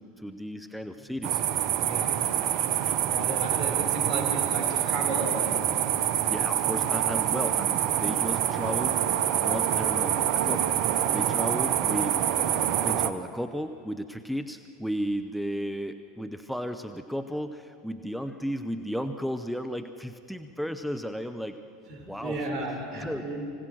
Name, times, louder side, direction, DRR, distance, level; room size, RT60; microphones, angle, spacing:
voice 1, 0.0-1.4 6.3-9.1 9.4-10.8 11.1-21.6 22.1-22.5 22.9-23.3, equal, ahead, 9 dB, 0.8 m, -34 dB
sound 1, 1.2-13.1, right 10 dB, 60° right, 0.9 m, -26 dB
voice 2, 1.8-2.8 3.1-5.6 21.9-23.5, right 2 dB, 40° right, -1 dB, 6.0 m, -34 dB
26.0 x 17.0 x 6.3 m, 2.4 s
hypercardioid pair, 80°, 0 cm